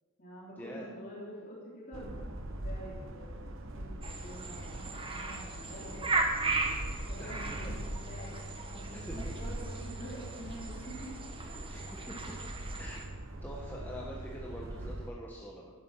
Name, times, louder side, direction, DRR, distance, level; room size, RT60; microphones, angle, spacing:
voice 1, 0.2-3.5 3.8-6.3 6.7-8.4 8.7-11.1 11.4-11.8 14.5-14.8, equal, 40° left, -7 dB, 3.4 m, -47 dB
sound 1, 1.9-15.1, right 1 dB, 65° right, 1.1 m, -42 dB
sound 2, 4.0-13.1, right 3 dB, 25° right, 1.5 m, -37 dB
voice 2, 7.2-7.7 8.9-9.3 11.7-12.4 12.8-13.1 13.4-15.7, equal, 10° left, -4 dB, 1.5 m, -45 dB
13.0 x 11.0 x 5.8 m, 1.5 s
head